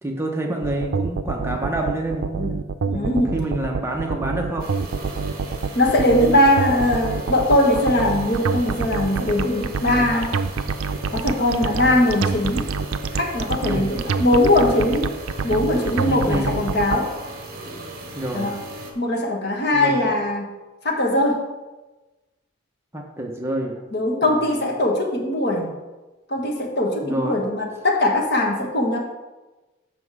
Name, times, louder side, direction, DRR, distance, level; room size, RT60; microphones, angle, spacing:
voice 1, 0.0-2.6 2.9-4.8 13.6-14.0 16.0-16.6 18.1-18.5 19.7-20.1 22.9-23.8 24.2-24.6 27.0-27.4, right 1 dB, 10° right, 1 dB, 0.7 m, -28 dB
sound 1, 0.6-17.0, right 5 dB, 80° right, 0.4 m, -26 dB
voice 2, 2.9-3.3 5.7-10.3 11.1-12.6 13.1-15.1 15.4-17.1 18.3-18.6 18.9-20.5 20.8-21.4 23.9-25.7 26.3-29.0, left 1 dB, 50° left, 1 dB, 1.3 m, -20 dB
sound 2, 4.6-18.9, right 1 dB, 45° right, 1.4 m, -37 dB
7.6 x 6.0 x 4.8 m, 1.1 s
head